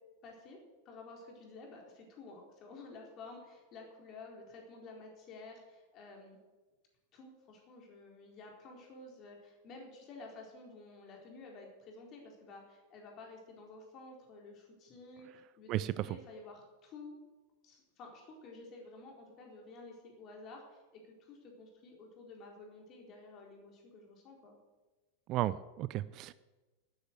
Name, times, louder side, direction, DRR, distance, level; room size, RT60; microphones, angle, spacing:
voice 1, 0.2-0.6 0.8-6.4 7.1-17.2 17.6-24.6, left 3 dB, 35° left, 1 dB, 4.3 m, -52 dB
voice 2, 15.7-16.1 25.3-26.3, right 14 dB, 35° right, 17 dB, 0.4 m, -34 dB
12.0 x 9.9 x 8.0 m, 1.2 s
figure-of-eight pair, 90°, 0 cm